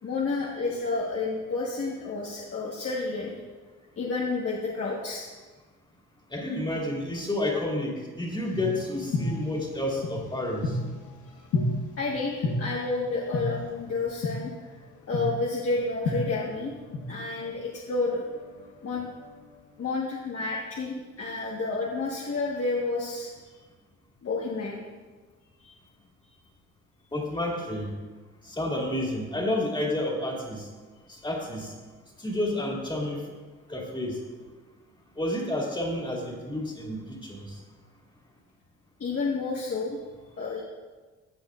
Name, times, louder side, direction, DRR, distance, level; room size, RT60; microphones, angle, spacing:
voice 1, 0.0-3.3 4.0-5.3 12.0-14.5 15.1-16.7 17.0-18.2 18.8-19.1 19.8-23.3 24.2-24.8 25.6-25.7 39.0-40.0 40.4-40.6, left 3 dB, 50° left, -4 dB, 1.5 m, -30 dB
voice 2, 6.3-10.8 27.1-27.9 28.4-30.7 31.1-31.7 32.2-33.2 33.7-34.2 35.2-37.6, left 1 dB, 15° left, -2 dB, 2.5 m, -30 dB
sound 1, 8.4-11.1 11.5-11.7 12.4-12.5 13.3-13.4 14.2-14.3 15.1-15.2 16.0-17.6 17.9-19.6, left 3 dB, 80° left, 1.3 m, -31 dB
15.0 x 7.8 x 2.5 m, 1.3 s
cardioid pair, 90°, 30 cm